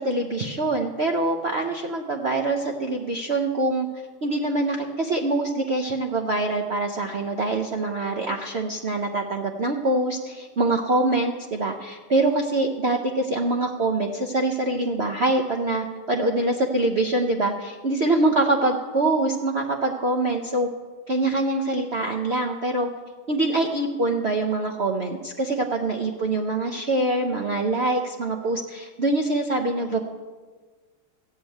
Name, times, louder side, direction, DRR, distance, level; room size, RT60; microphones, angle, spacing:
voice 1, 0.0-3.9 4.2-20.7 21.1-22.9 23.3-30.0, right 2 dB, 70° right, 2 dB, 0.6 m, -24 dB
14.0 x 6.7 x 9.1 m, 1.4 s
omnidirectional pair, 2.4 m